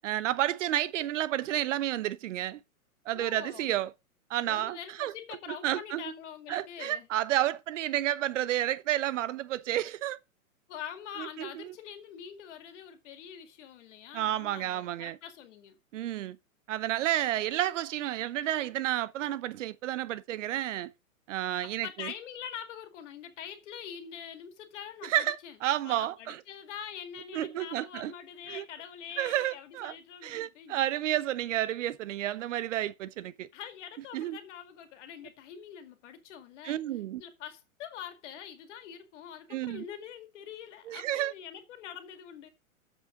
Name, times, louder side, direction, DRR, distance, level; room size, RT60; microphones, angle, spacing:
voice 1, 0.0-2.6 3.0-3.9 4.3-5.1 5.5-6.1 6.5-10.2 11.2-11.7 14.1-15.2 15.9-16.4 16.7-20.9 21.3-22.1 25.0-26.4 27.3-28.1 28.5-28.6 29.2-29.9 30.2-33.5 34.1-34.4 36.6-37.2 39.5-39.8 40.9-41.3, right 13 dB, 55° right, 0.9 m, -31 dB
voice 2, 3.1-3.7 4.4-7.1 10.7-15.8 21.6-25.6 25.8-31.0 33.5-36.8 37.2-42.5, left 9 dB, 55° left, 2.1 m, -44 dB
7.5 x 6.5 x 4.9 m
hypercardioid pair, 115°, 43 cm